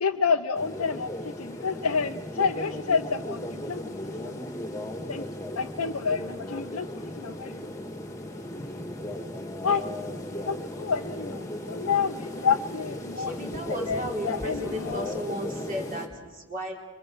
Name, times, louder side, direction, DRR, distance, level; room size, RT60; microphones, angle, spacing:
voice 1, 0.0-4.5 5.1-5.2 5.6-7.7 9.6-9.8 10.5-15.1, left 5 dB, 90° left, 4 dB, 0.8 m, -29 dB
sound 1, 0.5-16.1, left 1 dB, 15° left, 1.8 m, -36 dB
voice 2, 13.2-16.8, equal, 40° right, 0 dB, 3.8 m, -35 dB
26.5 x 24.0 x 6.2 m, 1.3 s
head